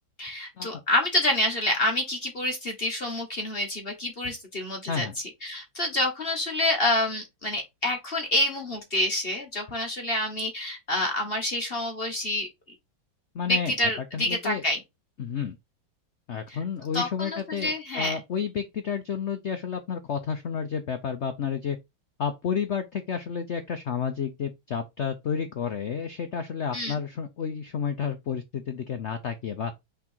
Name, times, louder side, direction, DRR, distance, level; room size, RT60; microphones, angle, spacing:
voice 1, 0.2-5.1 5.4-12.5 13.5-14.8 16.5-16.6 16.9-18.2 26.7-27.0, left 1 dB, 35° left, 1.1 m, -27 dB
voice 2, 13.3-13.7 14.1-14.6 15.2-15.6 16.3-21.8 22.2-29.7, left 7 dB, 80° left, 0.6 m, -31 dB
6.0 x 3.7 x 4.4 m
omnidirectional pair, 2.1 m